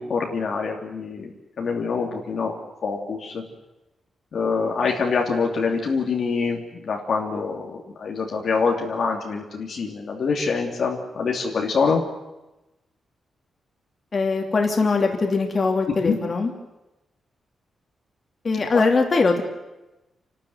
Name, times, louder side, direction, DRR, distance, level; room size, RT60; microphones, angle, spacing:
voice 1, 0.0-2.5 2.8-3.4 4.3-12.0 16.0-16.1 18.7-18.8, left 5 dB, 55° left, 1 dB, 2.7 m, -25 dB
voice 2, 14.1-16.5 18.4-19.4, left 4 dB, 35° left, 3 dB, 3.0 m, -21 dB
29.0 x 13.0 x 9.5 m, 0.99 s
wide cardioid pair, 160°, 0 cm